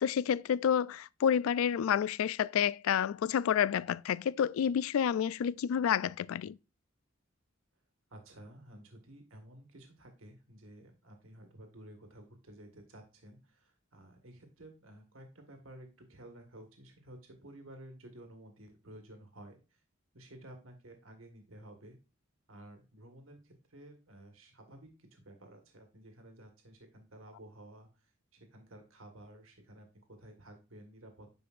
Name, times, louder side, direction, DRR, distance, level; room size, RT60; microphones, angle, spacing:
voice 1, 0.0-6.6, left 8 dB, 85° left, 0.3 m, -29 dB
voice 2, 8.1-19.8 20.1-22.0 22.5-31.4, right 1 dB, 80° right, 1.6 m, -53 dB
9.8 x 5.1 x 2.5 m
head